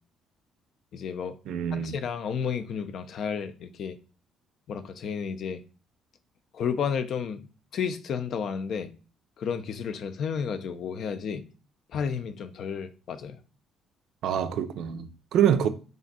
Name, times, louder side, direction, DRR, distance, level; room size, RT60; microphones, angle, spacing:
voice 1, 0.9-1.4 1.7-4.0 4.7-5.6 6.5-7.5 7.7-8.9 9.4-11.5 11.9-13.4, left 6 dB, 60° left, 0.5 m, -32 dB
voice 2, 1.5-2.0 14.2-15.7, right 9 dB, 70° right, 0.5 m, -25 dB
3.4 x 2.5 x 4.0 m
cardioid pair, 85°, 0 cm